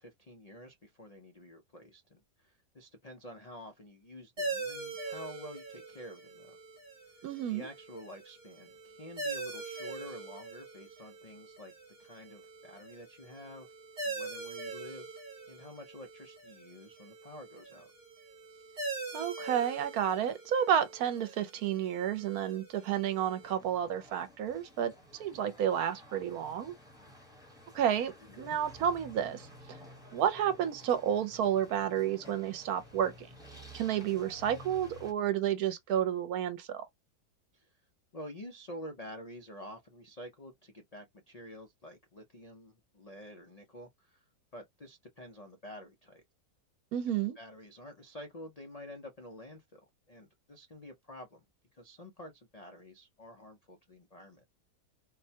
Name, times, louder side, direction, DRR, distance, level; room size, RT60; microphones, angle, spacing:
voice 1, 0.0-6.6 7.5-11.7 12.0-13.7 14.0-15.1 15.5-17.9 28.2-28.6 37.5-37.7 38.1-44.2 44.5-46.2 47.4-49.8 50.1-51.4 51.7-54.4, left 1 dB, 80° left, 0.3 m, -49 dB
sound 1, 4.4-23.5, right 3 dB, 40° right, 1.3 m, -43 dB
voice 2, 7.2-7.7 19.1-24.9 25.2-26.7 27.7-29.5 30.1-33.3 33.7-36.8 46.9-47.4, right 9 dB, 70° right, 1.1 m, -31 dB
sound 2, 23.4-35.1, equal, 5° right, 0.8 m, -53 dB
3.7 x 2.2 x 2.7 m
omnidirectional pair, 1.7 m